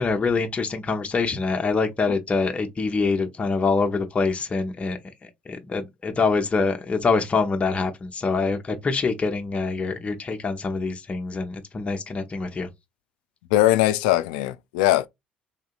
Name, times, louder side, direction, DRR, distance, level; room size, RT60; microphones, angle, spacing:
voice 1, 0.0-12.7, left 4 dB, 30° left, 0.7 m, -25 dB
voice 2, 13.5-15.1, left 15 dB, 80° left, 0.3 m, -20 dB
3.6 x 2.7 x 2.4 m
hypercardioid pair, 60°, 4 cm